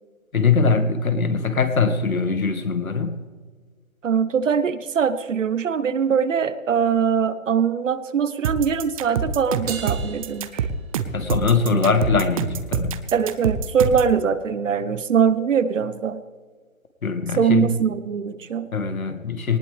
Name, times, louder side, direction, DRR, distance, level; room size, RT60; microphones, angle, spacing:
voice 1, 0.3-3.2 11.1-13.0 17.0-17.7 18.7-19.6, left 4 dB, 85° left, 8 dB, 2.0 m, -22 dB
voice 2, 4.0-10.7 13.1-16.2 17.4-18.7, right 7 dB, 65° right, 13 dB, 1.2 m, -22 dB
sound 1, 8.4-14.1, right 6 dB, 25° right, 0.7 m, -26 dB
Crash cymbal, 9.7-11.4, right 7 dB, 50° right, 2.7 m, -37 dB
19.0 x 18.5 x 3.4 m, 1.5 s
hypercardioid pair, 145°, 41 cm